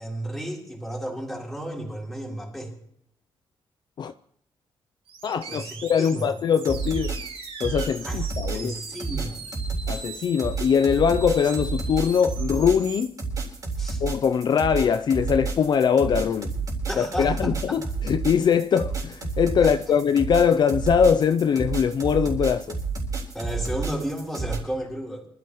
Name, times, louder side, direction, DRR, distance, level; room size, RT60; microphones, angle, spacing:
voice 1, 0.0-2.7 5.5-6.3 8.0-8.2 8.5-9.4 13.8-14.0 16.9-17.8 19.6-19.7 23.3-25.3, right 1 dB, ahead, 3.8 m, -33 dB
sound 1, 5.1-13.0, right 5 dB, 80° right, 6.7 m, -41 dB
voice 2, 5.2-7.2 7.6-8.7 9.9-13.1 14.0-16.6 17.0-22.8, left 7 dB, 50° left, 0.5 m, -22 dB
sound 2, 6.6-24.6, right 4 dB, 40° right, 4.1 m, -30 dB
24.5 x 13.5 x 3.1 m
wide cardioid pair, 150°, 10 cm